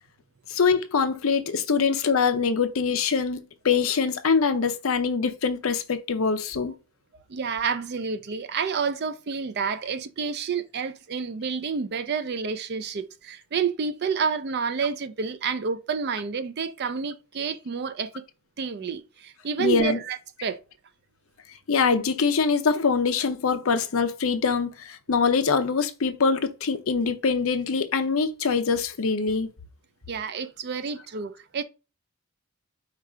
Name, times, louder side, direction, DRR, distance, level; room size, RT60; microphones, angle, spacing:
voice 1, 0.5-6.7 19.6-20.0 21.7-29.5, left 5 dB, 70° left, 0.6 m, -24 dB
voice 2, 7.3-18.1 18.6-20.6 30.1-31.6, right 6 dB, 50° right, 0.4 m, -29 dB
4.9 x 2.4 x 4.3 m
head